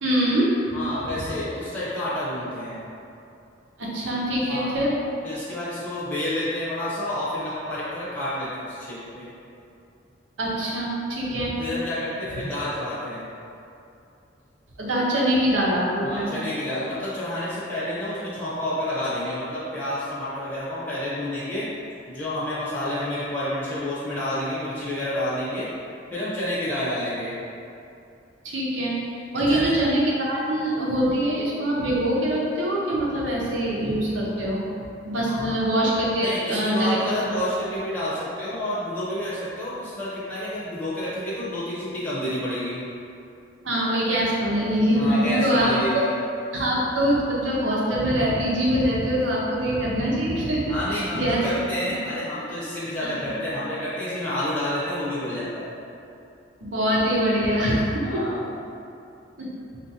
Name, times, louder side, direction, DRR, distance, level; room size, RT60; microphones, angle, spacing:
voice 1, 0.0-0.5 3.8-4.9 10.4-11.6 14.8-16.4 28.4-29.0 29.3-34.6 35.0-37.0 37.2-37.4 43.6-46.0 46.5-51.4 53.0-53.4 56.6-58.3 59.4-59.5, right 1 dB, 85° right, -5 dB, 0.8 m, -23 dB
voice 2, 0.7-2.9 4.5-4.7 5.2-9.3 11.6-13.3 16.0-21.6 22.1-25.7 26.1-27.4 29.5-29.7 35.2-35.5 36.2-42.9 44.9-46.1 50.7-55.7 58.0-58.4, left 1 dB, 10° left, -11 dB, 0.7 m, -29 dB
4.5 x 2.5 x 2.7 m, 2.6 s
head